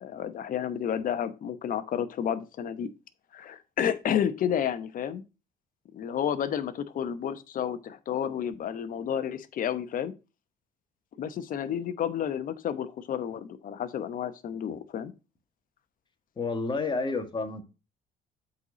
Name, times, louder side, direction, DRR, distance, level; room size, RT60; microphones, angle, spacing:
voice 1, 0.0-2.9 3.3-5.2 5.9-10.1 11.2-15.1, left 9 dB, 55° left, 0.9 m, -31 dB
voice 2, 16.4-17.6, left 3 dB, 30° left, 1.7 m, -30 dB
8.0 x 4.2 x 5.0 m
cardioid pair, 110°, 17 cm